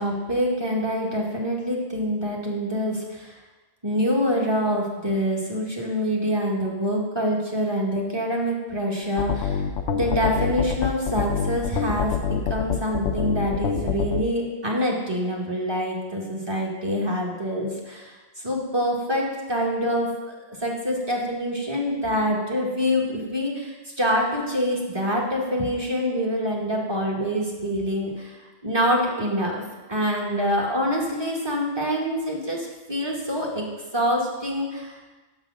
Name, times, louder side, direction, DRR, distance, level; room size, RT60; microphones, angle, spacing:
voice 1, 0.0-3.3 3.8-9.6 9.9-18.1 18.4-20.3 20.6-29.6 29.9-33.6 33.9-35.2, equal, 25° right, -2 dB, 1.1 m, -25 dB
sound 1, 9.2-14.2, left 7 dB, 90° left, 0.9 m, -25 dB
6.5 x 3.9 x 6.1 m, 1.2 s
omnidirectional pair, 1.1 m